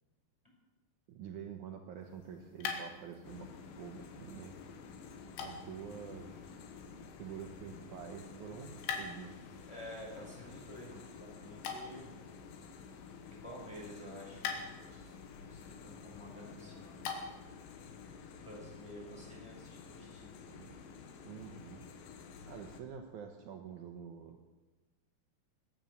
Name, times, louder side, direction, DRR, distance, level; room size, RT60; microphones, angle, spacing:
voice 1, 1.1-4.6 4.9-5.0 5.4-6.6 6.9-9.4 21.2-21.9 22.4-24.4, right 7 dB, 80° right, 4 dB, 1.7 m, -47 dB
sound 1, 1.9-17.6, left 6 dB, 90° left, 4.0 m, -47 dB
sound 2, 3.2-22.8, left 6 dB, 70° left, 2.6 m, -51 dB
voice 2, 9.7-12.1 13.4-17.0 18.4-20.7, equal, 5° left, -3 dB, 5.6 m, -50 dB
20.5 x 9.0 x 7.2 m, 1.2 s
omnidirectional pair, 5.0 m